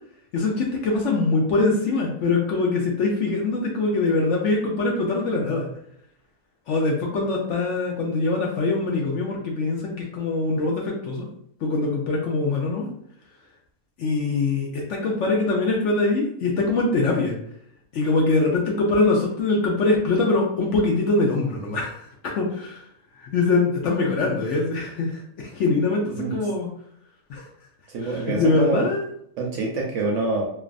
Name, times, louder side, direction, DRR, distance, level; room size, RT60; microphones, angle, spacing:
voice 1, 0.3-5.7 6.7-11.3 11.6-12.9 14.0-17.3 17.9-22.8 23.2-26.7 27.3-27.5 28.0-29.0, left 3 dB, 65° left, -1 dB, 0.8 m, -23 dB
voice 2, 27.9-28.9 29.4-30.5, right 3 dB, 65° right, -1 dB, 0.9 m, -26 dB
3.2 x 2.0 x 2.4 m, 0.68 s
omnidirectional pair, 1.6 m